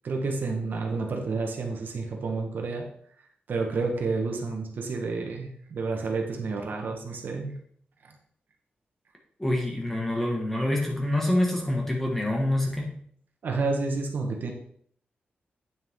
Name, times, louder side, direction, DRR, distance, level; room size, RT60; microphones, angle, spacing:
voice 1, 0.0-2.9 3.5-7.6 8.0-8.1 13.4-14.5, right 3 dB, 60° right, 2 dB, 1.5 m, -30 dB
voice 2, 9.4-12.9, left 1 dB, 10° left, 0 dB, 1.7 m, -26 dB
9.2 x 7.0 x 3.7 m, 0.63 s
wide cardioid pair, 165°, 4 cm